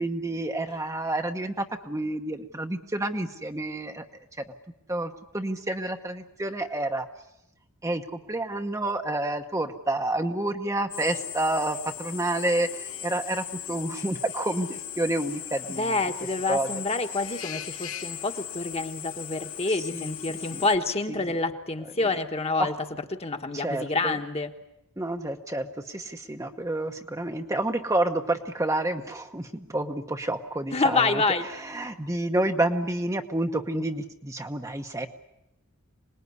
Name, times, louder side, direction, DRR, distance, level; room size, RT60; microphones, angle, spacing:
voice 1, 0.0-4.1 4.9-7.1 7.8-15.9 16.5-16.7 19.9-20.6 22.6-22.7 23.5-24.2 25.0-31.2 31.6-35.1, right 1 dB, 15° right, 5 dB, 1.0 m, -29 dB
Drill, 10.9-20.7, left 10 dB, 70° left, 2.5 m, -38 dB
voice 2, 15.7-24.5 30.7-31.5, left 3 dB, 30° left, 6 dB, 1.4 m, -28 dB
26.5 x 20.0 x 9.6 m, 0.85 s
head